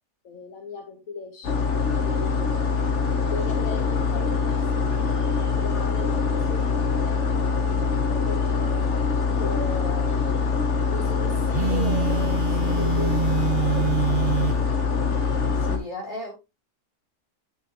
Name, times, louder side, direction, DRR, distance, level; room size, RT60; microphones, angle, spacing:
voice 1, 0.2-2.4 3.3-7.6 8.3-10.4 10.9-14.2, left 4 dB, 80° left, 1.5 m, -38 dB
sound 1, 1.4-15.8, left 5 dB, 60° left, 1.5 m, -24 dB
Telephone, 11.5-14.6, right 8 dB, 50° right, 0.6 m, -26 dB
voice 2, 15.6-16.3, left 1 dB, 35° left, 4.1 m, -35 dB
9.5 x 6.4 x 3.0 m
omnidirectional pair, 1.4 m